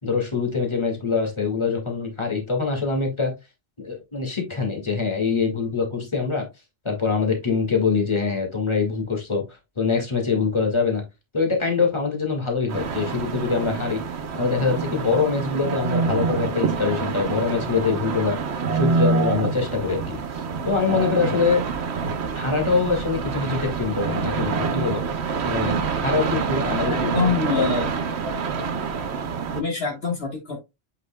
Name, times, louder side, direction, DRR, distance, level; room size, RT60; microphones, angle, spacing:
voice 1, 0.0-3.3 3.8-6.5 6.8-11.0 11.3-18.4 18.7-21.6 22.3-25.0 25.4-27.6, left 5 dB, 25° left, 1 dB, 2.1 m, -24 dB
sound 1, 12.7-29.6, right 5 dB, 70° right, 1.1 m, -26 dB
voice 2, 26.9-27.9 29.5-30.6, left 5 dB, 60° left, 1 dB, 1.7 m, -25 dB
8.0 x 5.5 x 2.2 m, 0.22 s
omnidirectional pair, 1.2 m